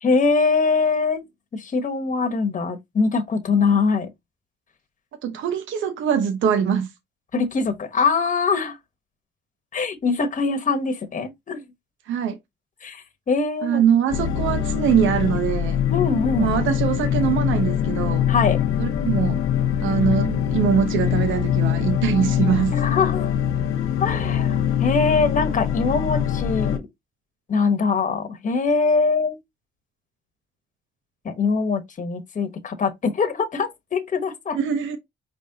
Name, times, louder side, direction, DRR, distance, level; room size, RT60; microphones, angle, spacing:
voice 1, 0.0-1.2 1.5-4.1 7.3-8.8 9.7-11.6 12.8-13.8 15.9-16.5 18.3-18.6 22.7-23.4 24.0-26.9 27.5-29.4 31.2-34.6, left 4 dB, 40° left, 1.1 m, -23 dB
voice 2, 5.2-6.9 12.1-12.4 13.6-15.8 16.4-18.3 18.8-19.4 19.8-22.8 34.5-35.0, right 8 dB, 75° right, 0.8 m, -22 dB
sound 1, 14.1-26.8, left 9 dB, 85° left, 0.8 m, -23 dB
5.1 x 3.2 x 2.8 m
cardioid pair, 90°, 20 cm